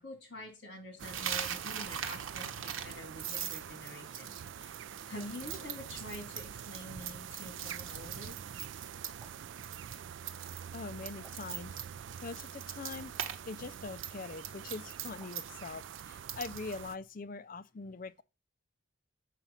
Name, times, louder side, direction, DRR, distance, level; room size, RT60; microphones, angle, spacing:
voice 1, 0.0-4.8 5.1-8.4, left 1 dB, 60° left, 3.0 m, -47 dB
sound 1, 1.0-17.0, right 8 dB, 65° right, 0.4 m, -46 dB
Coin (dropping), 1.1-9.3 9.6-10.0 10.2-13.4 13.6-16.8, right 9 dB, 80° right, 1.1 m, -40 dB
sound 2, 9.2-9.5 11.2-11.6 13.2-13.5 15.2-15.5, right 1 dB, 10° right, 3.5 m, -58 dB
voice 2, 10.7-11.8 12.2-13.1 13.5-18.2, left 4 dB, 40° left, 0.4 m, -43 dB
7.5 x 5.9 x 5.6 m
head